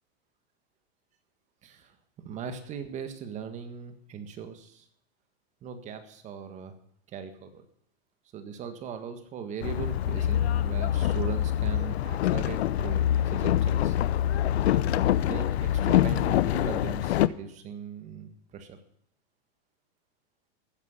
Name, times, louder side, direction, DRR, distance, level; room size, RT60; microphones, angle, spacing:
voice 1, 1.6-2.0 2.2-4.9 5.6-6.7 7.1-7.6 8.3-14.0 14.3-18.8, right 7 dB, 20° right, 8 dB, 1.7 m, -39 dB
Boat Water vehicle, 9.6-17.3, left 12 dB, 80° left, 0.8 m, -25 dB
14.5 x 9.7 x 8.1 m, 0.72 s
supercardioid pair, 160°, 32 cm